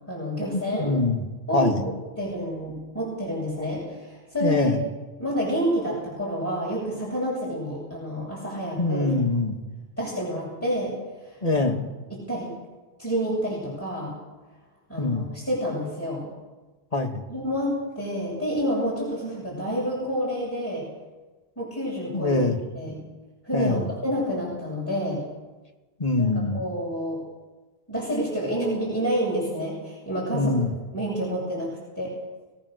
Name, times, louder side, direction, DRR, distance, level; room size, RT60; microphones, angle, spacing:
voice 1, 0.1-0.9 1.5-1.8 2.2-4.7 5.2-9.1 10.0-10.9 11.2-11.4 12.1-12.5 13.0-14.1 14.9-16.3 17.3-20.8 21.6-22.4 22.7-23.0 23.4-23.8 24.0-25.2 26.2-26.3 26.5-27.2 27.9-30.5 30.9-31.7 32.0-32.1, equal, 10° left, -7 dB, 8.0 m, -28 dB
voice 2, 0.8-1.2 1.5-1.8 4.4-4.8 8.8-9.6 11.4-11.9 15.0-15.3 16.9-17.2 22.1-22.6 23.5-23.8 26.0-26.6 30.3-30.7, left 2 dB, 35° left, 3 dB, 2.4 m, -23 dB
25.5 x 18.5 x 6.8 m, 1.2 s
omnidirectional pair, 1.1 m